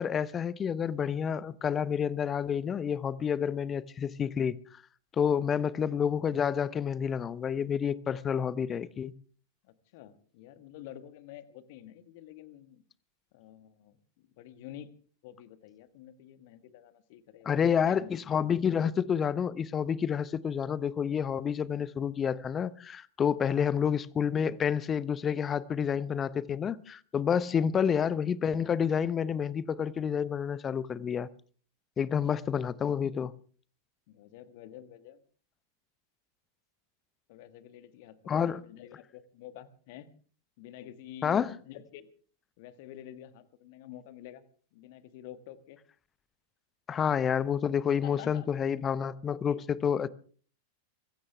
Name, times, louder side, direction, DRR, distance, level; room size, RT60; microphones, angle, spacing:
voice 1, 0.0-4.8 5.1-9.1 17.5-31.3 32.0-33.3 38.3-38.6 41.2-41.5 46.9-50.1, left 7 dB, 25° left, 0.8 m, -29 dB
voice 2, 9.6-12.8 13.3-14.9 15.2-18.1 21.7-21.8 27.5-27.7 32.4-32.8 34.1-35.2 37.3-40.1 40.6-42.1 42.6-44.4 44.7-45.8 48.0-48.5 49.5-49.7, left 11 dB, 50° left, 1.5 m, -49 dB
25.0 x 15.5 x 3.4 m
figure-of-eight pair, 90°, 0 cm